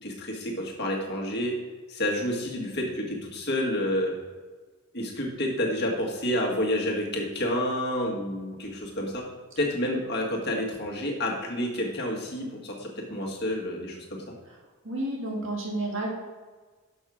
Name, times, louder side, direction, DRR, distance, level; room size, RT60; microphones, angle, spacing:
voice 1, 0.0-1.6 1.9-4.1 4.9-9.3 9.6-14.2, left 1 dB, 50° left, -1 dB, 1.6 m, -29 dB
voice 2, 14.8-16.1, right 1 dB, 60° right, -2 dB, 2.1 m, -31 dB
6.4 x 5.5 x 6.1 m, 1.4 s
head